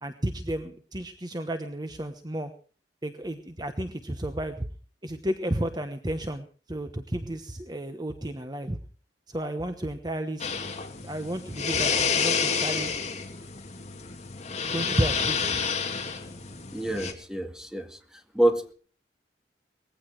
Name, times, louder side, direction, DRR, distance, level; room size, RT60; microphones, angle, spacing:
voice 1, 0.0-2.5 3.0-4.6 5.0-8.8 9.3-10.7 11.0-12.9 14.6-15.4, right 1 dB, 25° right, 8 dB, 1.1 m, -32 dB
sound 1, 10.4-17.1, left 5 dB, 40° left, 2.8 m, -29 dB
voice 2, 16.7-18.0 18.3-18.7, right 1 dB, 5° right, 5 dB, 2.0 m, -26 dB
19.5 x 15.5 x 4.7 m, 0.41 s
head